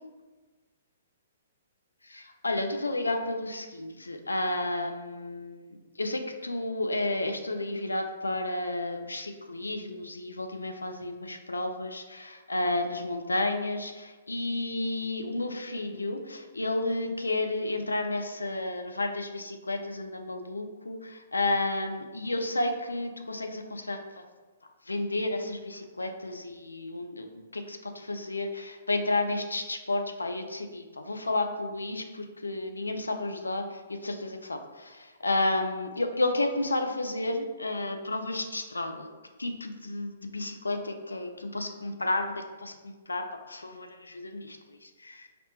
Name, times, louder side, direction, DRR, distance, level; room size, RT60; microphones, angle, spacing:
voice 1, 2.0-24.0 24.9-39.1 39.4-45.3, left 2 dB, 90° left, 5 dB, 0.4 m, -32 dB
4.1 x 2.1 x 2.7 m, 1.3 s
figure-of-eight pair, 125°, 0 cm